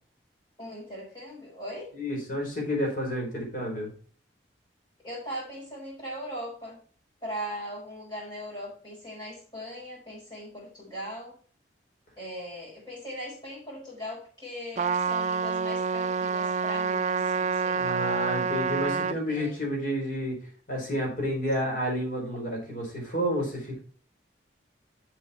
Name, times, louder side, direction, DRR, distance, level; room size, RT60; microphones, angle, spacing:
voice 1, 0.6-1.9 5.0-6.8 7.2-11.4 12.2-18.1 19.3-19.6, equal, 25° left, -6 dB, 5.0 m, -39 dB
voice 2, 1.9-3.9 17.7-20.4 20.7-23.8, equal, 50° left, -1 dB, 4.7 m, -30 dB
Trumpet, 14.8-19.2, right 5 dB, 40° right, 0.4 m, -27 dB
7.6 x 7.0 x 4.3 m, 0.42 s
head